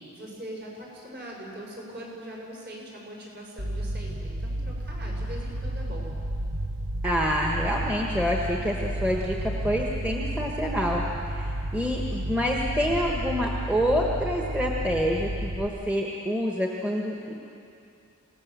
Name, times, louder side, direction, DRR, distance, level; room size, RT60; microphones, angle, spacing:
voice 1, 0.1-6.1, equal, 45° right, -3 dB, 6.3 m, -41 dB
sound 1, 3.6-15.7, right 1 dB, 65° right, 1.3 m, -32 dB
voice 2, 7.0-17.3, equal, 5° right, -2 dB, 1.5 m, -27 dB
26.5 x 18.0 x 7.6 m, 2.6 s
head